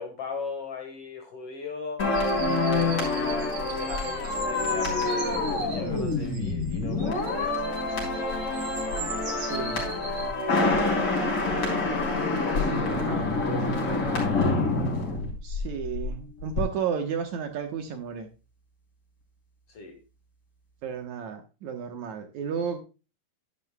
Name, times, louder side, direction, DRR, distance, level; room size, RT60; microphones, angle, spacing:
voice 1, 0.0-2.1 2.7-8.8 9.0-10.2 12.3-14.4 19.7-20.0, left 5 dB, 55° left, 5 dB, 2.0 m, -39 dB
sound 1, 2.0-16.1 16.4-16.6, left 3 dB, 35° left, 4.7 m, -27 dB
sound 2, 2.1-10.3, right 5 dB, 45° right, 2.9 m, -40 dB
voice 2, 9.3-9.8 12.7-13.3 15.4-18.3 20.8-22.8, right 7 dB, 65° right, 6 dB, 2.2 m, -33 dB
11.0 x 11.0 x 2.2 m, 0.31 s
omnidirectional pair, 4.0 m